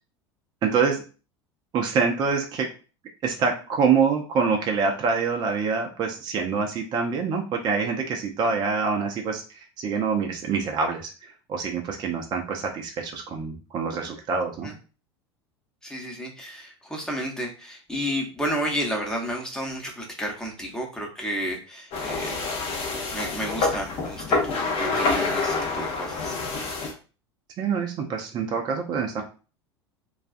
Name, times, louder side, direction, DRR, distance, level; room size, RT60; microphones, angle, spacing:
voice 1, 0.6-1.0 1.7-2.7 3.2-14.7 27.6-29.2, right 5 dB, 30° right, 2 dB, 0.4 m, -26 dB
voice 2, 15.8-22.3 23.1-26.4, equal, 5° left, 0 dB, 0.8 m, -31 dB
sound 1, 21.9-26.9, left 3 dB, 40° left, 0.7 m, -27 dB
2.4 x 2.2 x 2.4 m, 0.35 s
figure-of-eight pair, 80°, 14 cm